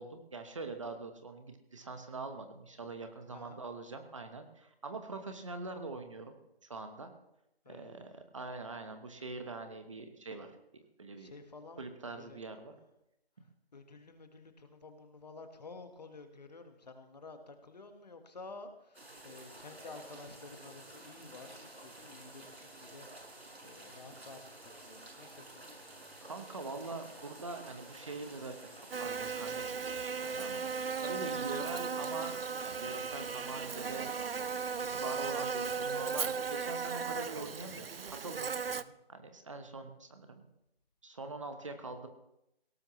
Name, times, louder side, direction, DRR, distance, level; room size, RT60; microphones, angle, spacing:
voice 1, 0.0-6.4 6.6-7.1 7.7-10.6 11.0-11.3 11.8-12.7 26.2-32.3 32.6-34.6 34.9-38.5 39.1-40.4 41.0-42.1, right 3 dB, 30° right, 6 dB, 1.2 m, -43 dB
voice 2, 3.3-3.6 7.6-8.2 11.2-12.4 13.4-25.8 31.0-31.2 38.7-38.9, left 3 dB, 40° left, 7 dB, 1.6 m, -52 dB
sound 1, 18.9-36.3, right 2 dB, 85° right, 6.6 m, -52 dB
Buzz, 28.9-38.8, right 5 dB, 65° right, 0.7 m, -36 dB
18.5 x 17.5 x 3.2 m, 0.85 s
figure-of-eight pair, 165°, 31 cm